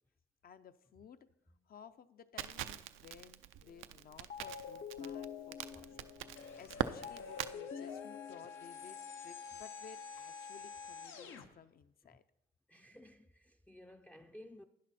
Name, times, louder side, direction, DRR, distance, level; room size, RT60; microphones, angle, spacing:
voice 1, 0.4-1.3 1.7-6.1 6.5-12.2, left 7 dB, 50° left, 0.6 m, -57 dB
Crackle, 2.4-7.5, right 12 dB, 90° right, 0.5 m, -42 dB
sound 1, 3.6-3.9 4.3-9.4, left 7 dB, 65° left, 1.0 m, -48 dB
voice 2, 5.7-6.1 12.1-12.2 12.7-14.6, left 1 dB, 5° left, 0.5 m, -56 dB
sound 2, 6.4-11.5, left 5 dB, 90° left, 1.2 m, -49 dB
11.5 x 10.0 x 4.2 m
cardioid pair, 90°, 20 cm